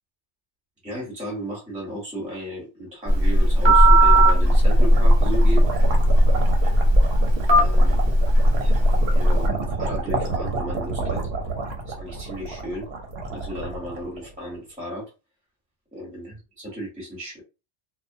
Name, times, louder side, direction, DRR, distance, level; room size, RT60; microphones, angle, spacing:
voice 1, 0.8-5.7 7.5-8.0 8.6-8.8 9.1-11.3 11.9-12.9 13.3-15.1 15.9-17.4, equal, 5° right, -5 dB, 0.9 m, -34 dB
Telephone, 3.1-9.5, equal, 45° right, 0.3 m, -16 dB
sound 1, 3.4-14.6, right 3 dB, 65° right, 0.8 m, -30 dB
2.2 x 2.1 x 2.6 m, 0.29 s
omnidirectional pair, 1.2 m